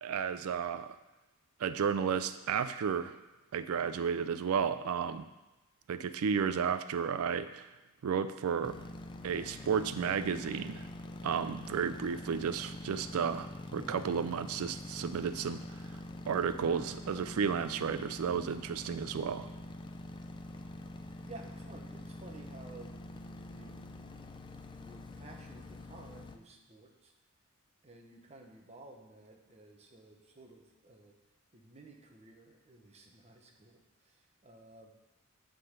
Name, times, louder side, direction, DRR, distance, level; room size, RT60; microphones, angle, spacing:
voice 1, 0.0-1.0 1.6-3.2 3.5-5.3 5.9-7.7 8.0-8.8 9.2-10.9 11.2-16.0 16.3-19.5, right 6 dB, 80° right, 12 dB, 0.4 m, -33 dB
sound 1, 8.6-26.4, left 1 dB, 20° left, 0.5 m, -45 dB
voice 2, 21.2-24.3 24.7-27.1 27.8-31.2 31.5-34.9, right 2 dB, 30° right, 1 dB, 1.0 m, -54 dB
9.2 x 3.8 x 6.6 m, 1.1 s
head